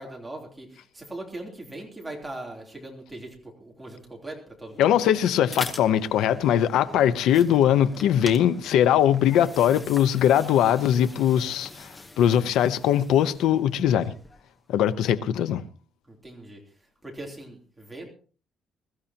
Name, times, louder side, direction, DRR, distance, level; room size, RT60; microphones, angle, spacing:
voice 1, 0.0-4.9 16.1-16.6 17.0-18.1, right 1 dB, 5° right, 3.2 m, -40 dB
sound 1, 4.7-14.6, left 2 dB, 15° left, 1.0 m, -43 dB
voice 2, 4.8-11.9 12.2-14.1 14.7-15.6, left 10 dB, 90° left, 0.8 m, -21 dB
22.0 x 13.5 x 2.9 m
cardioid pair, 165°, 0 cm